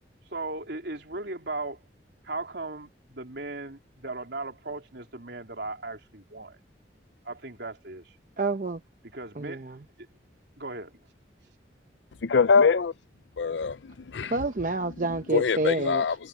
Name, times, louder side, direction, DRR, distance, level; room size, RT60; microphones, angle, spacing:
voice 1, 0.3-1.8 2.2-6.6 7.2-8.2 9.1-9.6 10.0-10.1 10.6-11.0, right 2 dB, 75° right, 3.4 m, -37 dB
voice 2, 8.4-8.8 9.4-9.8 14.2-16.1, right 2 dB, 50° right, 0.8 m, -28 dB
voice 3, 12.2-12.9 13.4-14.3 15.3-16.1, left 5 dB, 90° left, 0.6 m, -23 dB
head